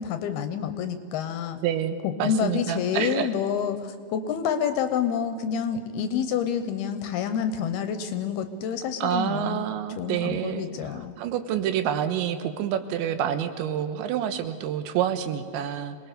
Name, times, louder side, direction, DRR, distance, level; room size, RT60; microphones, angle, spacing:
voice 1, 0.0-1.6 2.0-9.7 10.0-11.2, left 8 dB, 75° left, 9 dB, 2.5 m, -28 dB
voice 2, 1.6-3.3 9.0-16.0, right 9 dB, 85° right, 9 dB, 3.4 m, -28 dB
26.5 x 20.0 x 6.7 m, 2.2 s
omnidirectional pair, 5.2 m